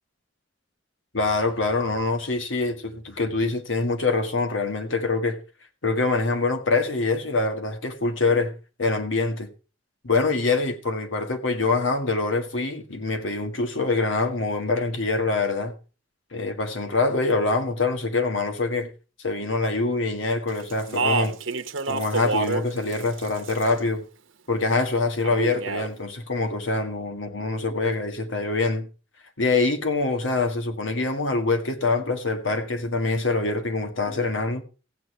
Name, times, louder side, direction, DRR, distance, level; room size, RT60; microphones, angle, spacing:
voice 1, 1.1-5.4 5.8-8.5 8.8-9.5 10.0-15.7 16.3-18.9 19.2-21.4 21.9-24.1 24.5-28.9 29.4-34.6, left 3 dB, 70° left, 1.8 m, -25 dB
Speech, 20.7-22.6 22.9-23.8 25.2-25.9, right 4 dB, 75° right, 1.1 m, -27 dB
15.0 x 8.4 x 4.5 m
head